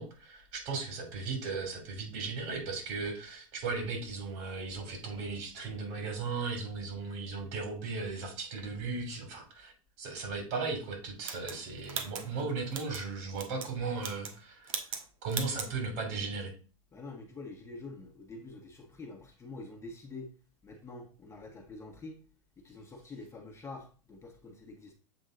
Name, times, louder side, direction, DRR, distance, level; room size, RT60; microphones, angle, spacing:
voice 1, 0.0-9.7 10.0-14.7 15.2-16.5, right 4 dB, 50° right, 3.0 m, -36 dB
sound 1, 11.2-13.0 13.4-13.7 14.0-14.4 14.7-15.0 15.3-15.7, right 6 dB, 70° right, 1.3 m, -38 dB
voice 2, 16.9-20.3 20.6-22.2 22.6-24.9, left 3 dB, 15° left, 1.3 m, -46 dB
7.8 x 3.5 x 3.9 m
hypercardioid pair, 105°, 18 cm